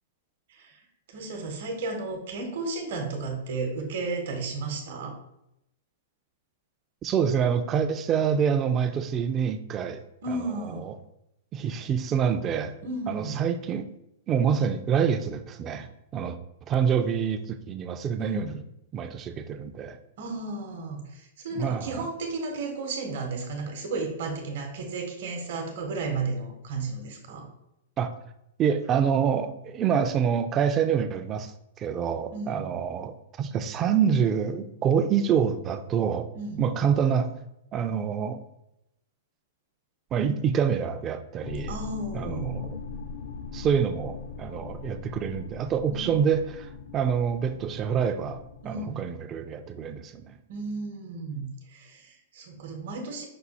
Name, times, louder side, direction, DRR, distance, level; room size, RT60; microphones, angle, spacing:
voice 1, 0.5-5.2 10.2-10.9 12.8-13.4 18.2-18.6 20.2-27.5 32.3-32.7 36.3-36.7 41.7-42.6 45.9-46.3 48.6-49.0 50.5-53.2, right 3 dB, 60° right, 2 dB, 0.9 m, -33 dB
voice 2, 7.0-10.0 10.3-10.4 10.9-11.0 11.5-12.7 13.1-13.8 14.3-15.9 16.1-16.4 16.7-18.5 18.9-20.0 21.6-22.1 28.0-28.1 28.6-31.5 31.8-36.3 36.6-37.3 37.7-38.4 40.1-41.7 42.1-42.8 43.5-50.4, right 7 dB, 25° right, 9 dB, 0.3 m, -26 dB
sound 1, 41.4-48.6, left 4 dB, 70° left, 0.5 m, -40 dB
5.4 x 2.3 x 4.1 m, 0.82 s
hypercardioid pair, 150°, 0 cm